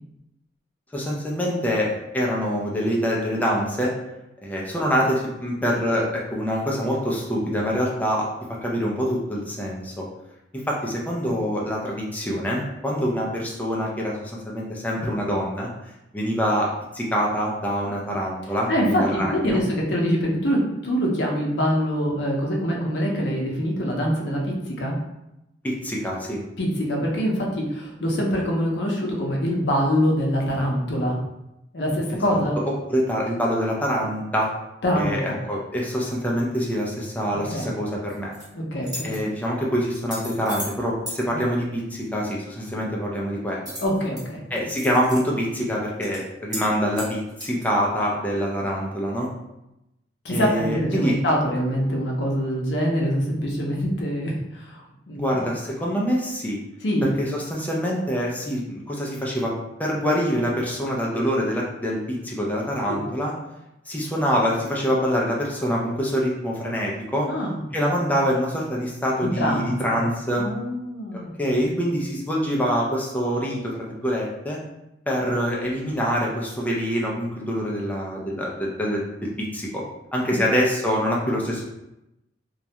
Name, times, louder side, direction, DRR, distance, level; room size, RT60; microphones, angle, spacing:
voice 1, 0.9-3.9 4.4-8.3 8.6-10.1 10.5-15.7 16.1-19.6 25.6-26.4 32.3-32.4 32.6-34.5 35.0-38.3 39.0-43.7 44.5-49.3 50.3-51.2 55.2-56.6 57.0-59.5 59.8-63.3 63.9-67.3 67.7-70.5 71.1-74.6 75.1-79.8 80.1-81.6, equal, 10° left, -3 dB, 0.4 m, -25 dB
voice 2, 18.7-25.0 26.6-31.2 31.7-32.6 34.8-35.4 37.5-37.7 38.5-39.1 41.3-41.4 43.8-44.4 50.2-55.4 56.8-57.1 62.9-63.0 67.3-67.6 69.2-70.0 70.4-71.3 71.6-71.7 80.3-80.4, equal, 70° left, -1 dB, 0.6 m, -24 dB
sound 1, 38.1-38.4 38.8-39.2 39.9-40.8 41.1-41.2 43.7-44.2 44.6-45.2 45.6-45.7 46.0-46.2 46.5-46.7 46.9-47.7, equal, 25° right, 0.9 m, -35 dB
2.3 x 2.1 x 2.8 m, 0.90 s
head